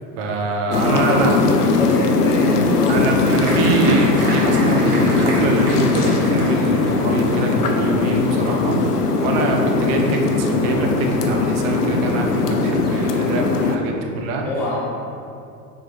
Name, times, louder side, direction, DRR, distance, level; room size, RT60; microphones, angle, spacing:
voice 1, 0.2-1.4 2.9-14.5, right 3 dB, 35° right, 2 dB, 0.9 m, -24 dB
sound 1, 0.7-13.8, left 3 dB, 70° left, 0.8 m, -19 dB
voice 2, 0.8-3.6 14.4-15.0, left 1 dB, 5° left, -5 dB, 0.3 m, -26 dB
Applause, 3.2-10.3 10.6-11.3 11.7-11.8 12.1-12.6, right 1 dB, 65° right, 1.2 m, -32 dB
sound 2, 4.4-5.7 6.3-7.2, left 1 dB, 25° left, 1.1 m, -34 dB
6.7 x 4.6 x 3.7 m, 2.6 s
figure-of-eight pair, 85°, 49 cm